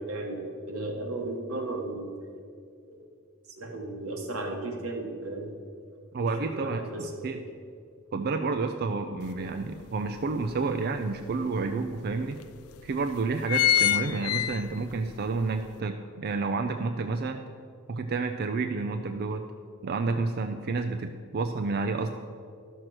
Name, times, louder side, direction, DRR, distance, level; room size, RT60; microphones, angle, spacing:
voice 1, 0.0-2.1 2.9-3.0 3.5-5.5 6.1-7.5, right 2 dB, 85° right, 0 dB, 1.7 m, -35 dB
voice 2, 6.1-7.4 8.1-12.4 12.8-17.4 17.9-19.5 19.8-22.1, right 3 dB, 45° right, 6 dB, 0.4 m, -30 dB
sound 1, 9.2-9.3 9.8-11.0 11.6-11.7 12.0-12.1 12.7-12.9 13.2-15.0 15.4-15.5, left 11 dB, 80° left, 0.4 m, -25 dB
12.0 x 6.4 x 6.0 m, 2.3 s
head